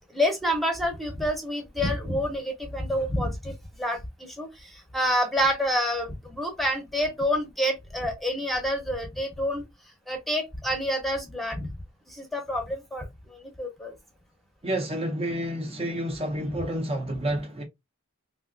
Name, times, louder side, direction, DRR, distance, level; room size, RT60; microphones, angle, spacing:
voice 1, 0.1-9.6 10.1-11.7 12.1-13.9, equal, ahead, 0.7 m, -28 dB
voice 2, 14.6-17.6, right 1 dB, 30° right, 0.5 m, -29 dB
3.3 x 2.6 x 2.5 m
head